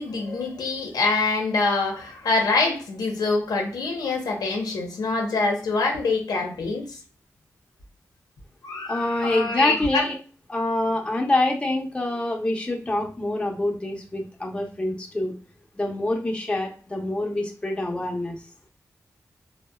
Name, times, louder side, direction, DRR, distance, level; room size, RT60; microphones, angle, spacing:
voice 1, 0.0-7.0 8.6-10.0, left 3 dB, 90° left, 0.7 m, -25 dB
voice 2, 8.9-10.2 10.5-15.3 15.8-18.4, left 1 dB, 15° left, 0.7 m, -26 dB
2.7 x 2.1 x 2.2 m
cardioid pair, 50°, 6 cm